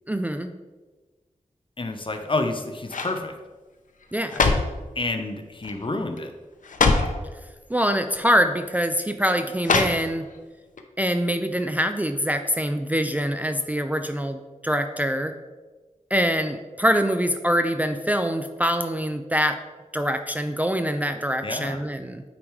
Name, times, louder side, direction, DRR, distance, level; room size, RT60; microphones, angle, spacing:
voice 1, 0.1-0.5 4.1-4.3 7.7-10.3 11.0-15.3 16.1-19.6 19.9-22.2, equal, 10° right, 7 dB, 0.4 m, -24 dB
voice 2, 1.8-3.3 4.9-6.3 21.4-21.8, left 2 dB, 40° left, 6 dB, 0.8 m, -29 dB
sound 1, 2.0-2.5 2.9-3.2 4.0-4.8 5.6-5.9 6.2-6.3 6.6-7.2 8.1-8.3 9.6-10.4 10.8-10.9, left 4 dB, 75° left, 0.7 m, -23 dB
8.6 x 4.9 x 3.2 m, 1.3 s
wide cardioid pair, 60°, 13 cm